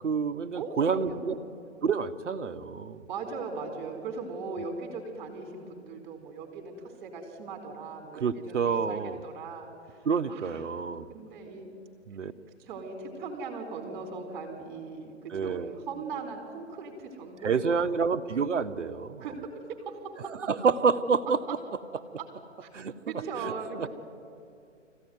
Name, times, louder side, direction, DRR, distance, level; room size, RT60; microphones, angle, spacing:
voice 1, 0.0-1.4 1.8-3.0 8.2-9.2 10.0-11.1 12.1-12.3 15.3-15.7 17.4-19.3 20.5-21.4 22.7-22.9 23.4-23.9, right 5 dB, 70° right, 9 dB, 1.3 m, -28 dB
voice 2, 0.5-1.4 3.1-6.7 7.0-10.6 11.1-11.7 12.6-18.0 19.2-19.5 19.8-20.0 22.6-22.7 23.1-23.9, right 4 dB, 40° right, 3 dB, 4.4 m, -39 dB
24.5 x 16.0 x 9.5 m, 2.4 s
figure-of-eight pair, 130°, 38 cm